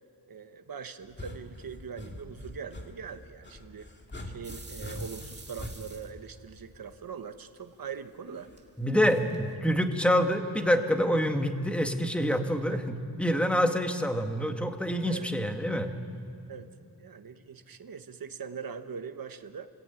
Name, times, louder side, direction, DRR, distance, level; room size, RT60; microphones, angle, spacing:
voice 1, 0.3-3.9 4.2-8.5 9.1-9.4 12.7-12.8 15.0-15.3 16.5-16.7 17.0-19.7, right 6 dB, 55° right, 8 dB, 1.3 m, -42 dB
sound 1, 1.0-7.1 8.5-8.9, left 1 dB, 25° left, 2.3 m, -43 dB
sound 2, 4.4-6.9 7.2-9.5, right 3 dB, 25° right, 2.5 m, -46 dB
voice 2, 8.8-15.9, equal, 5° left, 5 dB, 1.6 m, -26 dB
28.5 x 20.5 x 9.1 m, 2.5 s
wide cardioid pair, 155°, 41 cm